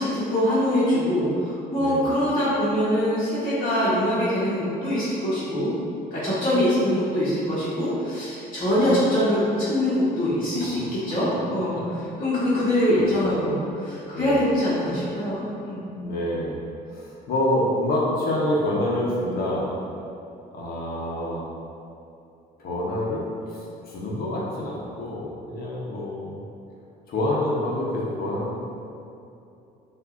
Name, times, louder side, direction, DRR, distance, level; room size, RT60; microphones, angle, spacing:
voice 1, 0.0-5.7 6.1-11.7 12.2-15.9, equal, 30° left, -13 dB, 1.3 m, -23 dB
voice 2, 1.8-2.1 10.6-10.7 11.3-11.4 11.7-11.8 12.4-12.5 12.9-13.3 14.1-14.4 16.0-16.6 16.9-19.7 20.5-21.4 22.6-26.4 27.1-28.6, left 1 dB, 65° left, -4 dB, 0.9 m, -27 dB
6.0 x 2.7 x 2.6 m, 2.7 s
cardioid pair, 110°, 17 cm